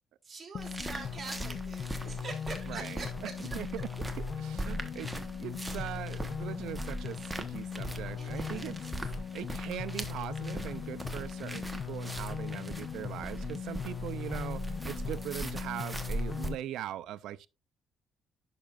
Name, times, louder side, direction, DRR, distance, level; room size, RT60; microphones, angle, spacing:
voice 1, 0.2-3.3 5.6-5.8 7.0-7.1 8.2-8.9, right 4 dB, 30° right, 2.9 m, -45 dB
sound 1, 0.5-16.5, left 7 dB, 55° left, 0.5 m, -39 dB
sound 2, 0.6-16.5, right 1 dB, 10° right, 1.0 m, -40 dB
voice 2, 2.7-3.9 4.4-8.8 9.0-17.5, right 12 dB, 85° right, 0.4 m, -41 dB
10.0 x 6.0 x 2.4 m
cardioid pair, 125°, 0 cm